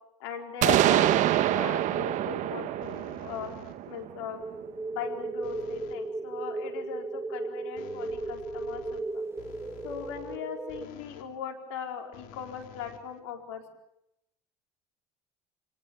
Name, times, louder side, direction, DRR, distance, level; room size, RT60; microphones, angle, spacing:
voice 1, 0.2-3.5 3.9-4.4 4.9-9.2 9.8-13.6, left 7 dB, 85° left, 3 dB, 4.6 m, -39 dB
sound 1, 0.6-4.4, right 13 dB, 60° right, 1.3 m, -26 dB
sound 2, 2.8-4.0 5.4-6.1 7.8-11.4 12.1-13.6, left 11 dB, 70° left, 2.5 m, -51 dB
sound 3, 4.4-10.9, right 3 dB, 15° right, 1.6 m, -36 dB
29.0 x 19.0 x 7.2 m, 0.79 s
supercardioid pair, 85°, 14 cm